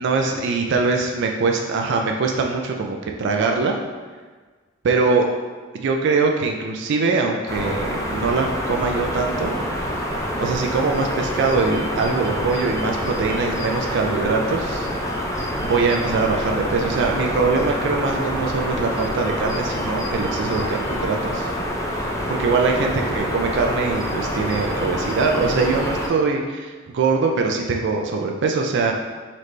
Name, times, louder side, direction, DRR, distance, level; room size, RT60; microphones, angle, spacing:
voice 1, 0.0-3.8 4.8-5.3 5.7-9.5 10.4-14.9 15.6-21.5 22.3-28.9, right 4 dB, 60° right, 2 dB, 0.4 m, -22 dB
sound 1, 7.5-26.1, equal, 15° left, 0.5 m, -26 dB
4.0 x 3.2 x 3.1 m, 1.4 s
head